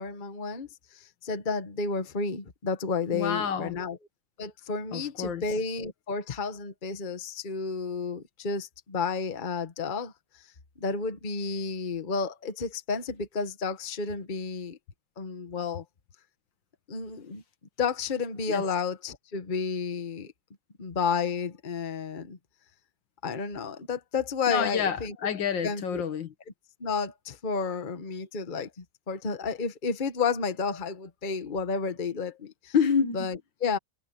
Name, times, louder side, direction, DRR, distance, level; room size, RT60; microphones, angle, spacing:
voice 1, 0.0-4.0 4.4-10.1 10.8-14.8 15.2-15.8 16.9-17.4 17.8-20.3 20.8-22.4 23.2-25.1 25.6-26.0 26.8-32.7 33.1-33.8, left 5 dB, 30° left, 1.3 m, -31 dB
voice 2, 3.1-3.8 4.9-5.4 18.5-18.6 24.5-26.3 32.7-33.2, left 6 dB, 75° left, 2.2 m, -28 dB
omnidirectional pair, 2.1 m